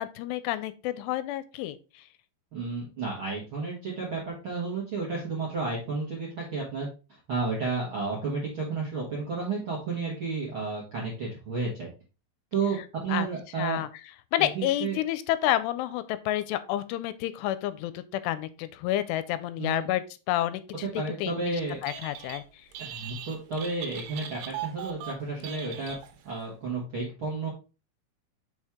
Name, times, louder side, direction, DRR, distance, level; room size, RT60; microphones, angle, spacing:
voice 1, 0.0-1.8 13.1-13.3 13.6-13.9 14.3-20.9 21.2-21.6 21.8-22.4, left 13 dB, 85° left, 14 dB, 2.6 m, -29 dB
voice 2, 2.5-6.9 7.3-11.9 12.5-12.8 13.0-13.8 14.5-15.0 19.6-19.9 20.8-21.8 22.8-26.0 26.2-27.5, right 4 dB, 55° right, -5 dB, 1.4 m, -32 dB
Telephone, 21.7-22.4 22.7-26.4, right 10 dB, 90° right, 2.9 m, -40 dB
6.2 x 4.5 x 3.5 m, 0.32 s
omnidirectional pair, 4.8 m